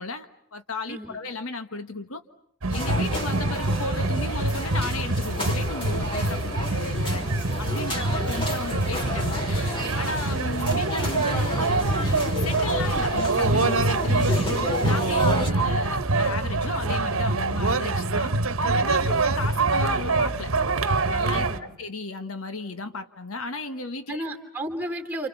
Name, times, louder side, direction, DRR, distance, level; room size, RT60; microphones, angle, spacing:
voice 1, 0.0-2.2 2.7-7.3 7.6-20.5 21.1-24.2, left 3 dB, 75° left, 9 dB, 1.6 m, -35 dB
voice 2, 0.9-1.2 7.9-8.3 15.3-15.7 19.1-19.5 21.3-21.8 24.1-25.3, right 1 dB, 10° right, 5 dB, 3.0 m, -35 dB
sound 1, 2.6-21.6, right 3 dB, 70° right, 1.2 m, -25 dB
sound 2, 2.7-15.5, left 1 dB, 25° left, 3.6 m, -32 dB
29.0 x 28.5 x 7.1 m, 0.66 s
head